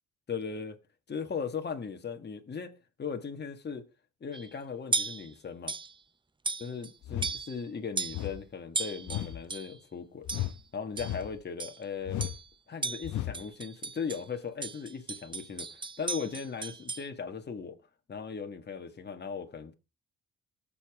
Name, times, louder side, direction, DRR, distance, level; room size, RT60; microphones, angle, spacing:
voice 1, 0.3-0.8 1.1-2.7 3.0-3.9 4.2-5.7 6.6-10.3 10.7-12.3 12.7-17.8 18.1-19.7, left 6 dB, 35° left, 1.8 m, -38 dB
sound 1, 4.3-4.5 4.9-5.3 5.7-5.9 6.4-6.9 7.2-7.6 8.0-8.3 8.7-9.8 10.3-10.6 11.0-11.2 11.6-11.8 12.2-12.5 12.8-14.2 14.6-17.1, right 4 dB, 15° right, 0.6 m, -36 dB
sound 2, 7.0-7.4 8.1-8.4 9.1-9.4 10.2-10.6 11.0-11.4 12.0-12.4 13.0-13.4, left 13 dB, 75° left, 1.0 m, -35 dB
19.0 x 7.2 x 3.6 m
cardioid pair, 90°, 30 cm